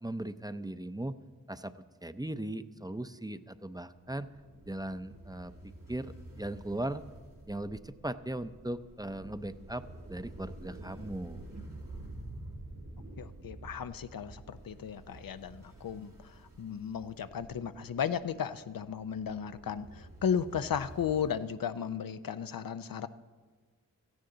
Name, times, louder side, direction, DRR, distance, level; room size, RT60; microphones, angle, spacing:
voice 1, 0.0-1.2 1.5-1.7 2.0-4.3 4.7-7.0 7.5-11.5, right 1 dB, 10° right, 12 dB, 0.6 m, -38 dB
sound 1, 4.0-21.4, right 1 dB, 75° right, 4.4 m, -49 dB
voice 2, 13.2-16.1 16.6-19.9 20.2-23.1, left 7 dB, 85° left, 12 dB, 0.6 m, -34 dB
16.5 x 14.0 x 3.9 m, 1.5 s
cardioid pair, 45°, 33 cm